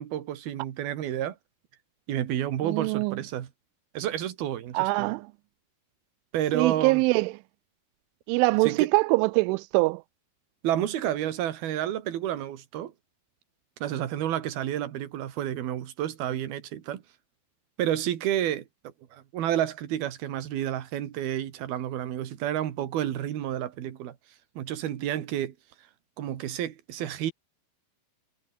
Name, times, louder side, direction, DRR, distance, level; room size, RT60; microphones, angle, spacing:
voice 1, 0.0-1.4 2.1-3.5 3.9-5.2 6.3-7.0 8.6-8.9 10.6-12.9 13.8-17.0 17.8-24.2 24.6-25.6 26.2-27.3, right 11 dB, 60° right, 3.5 m, -30 dB
voice 2, 2.6-3.2 4.7-5.3 6.5-7.3 8.3-10.0, right 25 dB, 90° right, 3.0 m, -23 dB
omnidirectional pair, 5.4 m